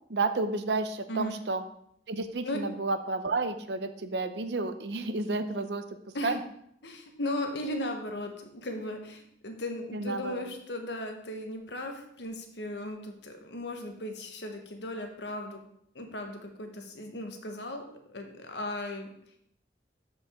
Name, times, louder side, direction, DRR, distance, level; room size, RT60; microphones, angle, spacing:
voice 1, 0.1-1.6 2.1-5.8 6.2-6.4 9.9-10.4, right 3 dB, 70° right, 10 dB, 0.7 m, -31 dB
voice 2, 6.8-15.6 15.9-19.1, left 1 dB, 80° left, 4 dB, 1.3 m, -37 dB
13.0 x 5.2 x 3.6 m, 0.70 s
head